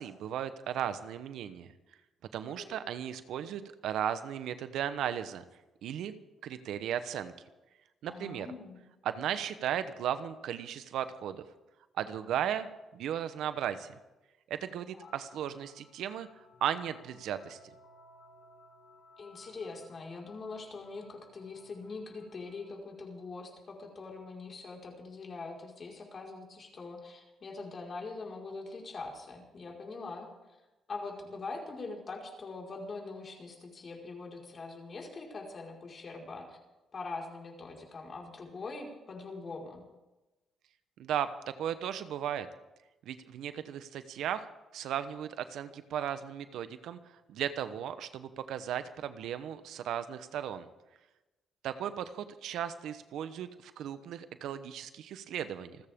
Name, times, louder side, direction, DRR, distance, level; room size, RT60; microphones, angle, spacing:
voice 1, 0.0-1.7 2.3-5.4 5.8-6.1 6.4-7.3 8.0-8.5 9.0-11.4 12.0-12.7 12.9-13.9 14.5-16.3 16.6-17.6 41.0-41.3 41.6-42.5 43.0-44.5 44.7-47.0 47.3-50.7 51.6-55.8, right 9 dB, 80° right, 11 dB, 1.0 m, -36 dB
voice 2, 2.5-2.8 8.1-8.8 14.9-15.1 19.2-30.3 30.9-36.6 36.9-39.8, left 3 dB, 40° left, -1 dB, 5.0 m, -43 dB
sound 1, 15.0-22.7, left 2 dB, 75° left, 6.2 m, -60 dB
28.0 x 14.0 x 3.7 m, 1.1 s
cardioid pair, 90°, 0 cm